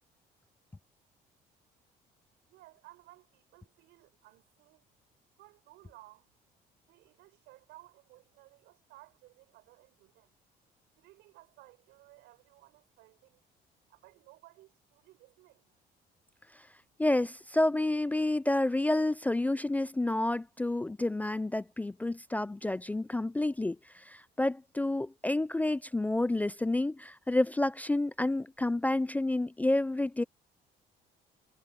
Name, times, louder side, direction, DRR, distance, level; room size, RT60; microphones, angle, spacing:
voice 1, 2.5-4.8 5.4-10.3 11.0-13.4 13.9-15.7, right 18 dB, 90° right, 6.2 m, -58 dB
voice 2, 17.0-30.2, left 2 dB, 10° left, 0.3 m, -29 dB
cardioid pair, 110°, 17 cm